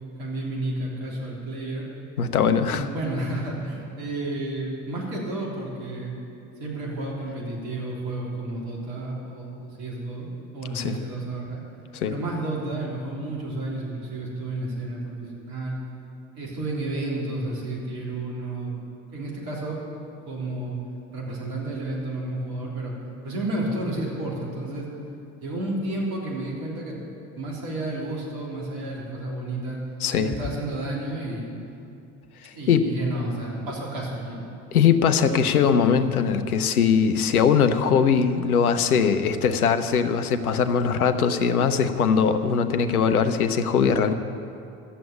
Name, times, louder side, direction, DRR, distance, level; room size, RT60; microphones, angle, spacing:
voice 1, 0.2-1.9 2.7-6.2 6.6-10.3 10.5-11.6 12.1-15.8 16.4-18.7 19.1-19.9 20.3-20.8 21.1-22.9 23.2-24.9 25.4-27.0 27.3-29.8 30.1-31.5 32.5-34.4, right 2 dB, 55° right, -3 dB, 3.4 m, -31 dB
voice 2, 2.2-2.8 10.7-11.0 11.9-12.1 30.0-30.3 32.7-32.8 34.7-44.1, left 6 dB, 75° left, 10 dB, 0.7 m, -21 dB
12.5 x 7.7 x 8.5 m, 2.6 s
figure-of-eight pair, 65°, 44 cm